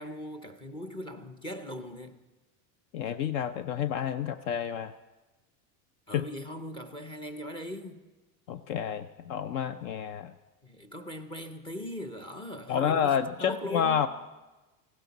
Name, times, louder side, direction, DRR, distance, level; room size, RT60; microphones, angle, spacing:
voice 1, 0.0-2.2 6.1-8.0 10.6-13.1 13.4-14.1, equal, 10° left, 0.6 m, -39 dB
voice 2, 2.9-4.9 6.1-6.2 8.5-10.3 12.7-14.1, left 8 dB, 60° left, 0.6 m, -29 dB
18.5 x 16.0 x 4.0 m
cardioid pair, 165°, 42 cm